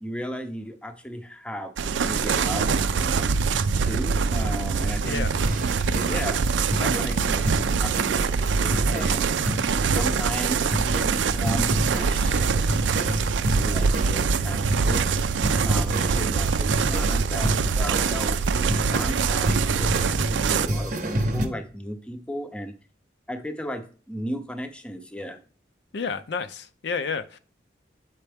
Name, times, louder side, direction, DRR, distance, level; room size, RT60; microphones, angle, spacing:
voice 1, 0.0-1.7 2.0-3.4 3.8-5.3 6.0-6.5 6.8-9.4 9.8-12.8 13.5-15.2 15.6-22.7 23.3-25.4, equal, 5° left, 0.6 m, -35 dB
sound 1, 1.8-20.7, right 5 dB, 85° right, 0.4 m, -24 dB
voice 2, 5.0-5.3 25.9-27.4, left 5 dB, 70° left, 0.5 m, -30 dB
sound 2, 5.4-21.5, right 1 dB, 45° right, 0.7 m, -30 dB
8.3 x 4.3 x 3.5 m
head